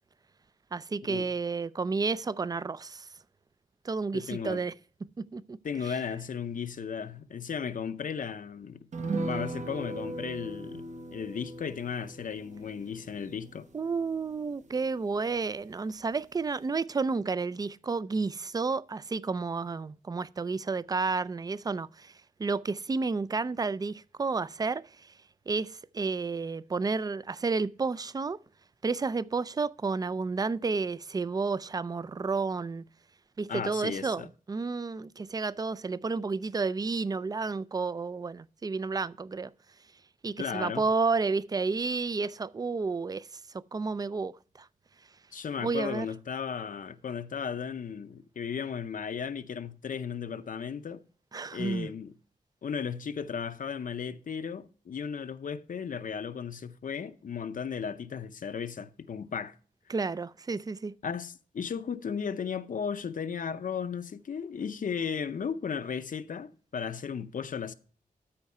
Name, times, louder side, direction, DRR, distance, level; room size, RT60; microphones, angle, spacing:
voice 1, 0.7-3.1 3.8-4.7 5.2-5.6 5.8-5.9 13.7-25.1 25.5-28.4 28.8-32.8 33.4-39.5 40.2-43.4 43.7-44.7 45.6-46.1 51.3-51.9 59.9-60.9, right 4 dB, 25° right, 0.3 m, -31 dB
voice 2, 4.1-4.6 5.6-8.9 9.2-10.8 11.1-13.7 33.5-34.3 40.4-40.8 45.3-51.0 51.5-52.1 52.6-59.6 61.0-67.7, left 7 dB, 65° left, 0.6 m, -35 dB
sound 1, 8.9-15.7 16.0-16.1 16.5-16.6, right 2 dB, 55° right, 1.0 m, -39 dB
13.0 x 4.7 x 5.3 m
wide cardioid pair, 155°, 15 cm